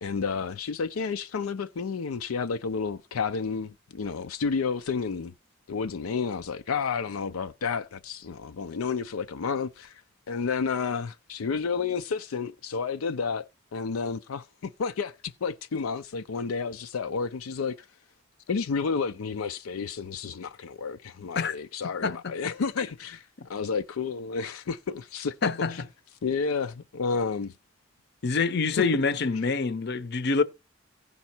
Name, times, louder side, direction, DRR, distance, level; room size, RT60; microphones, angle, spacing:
voice 1, 0.0-5.3 5.7-10.0 10.3-17.9 18.5-25.8 26.2-27.5 28.7-28.8, left 5 dB, 85° left, 0.5 m, -31 dB
voice 2, 25.4-25.7 28.2-30.4, left 4 dB, 50° left, 0.7 m, -26 dB
15.5 x 5.4 x 4.4 m
head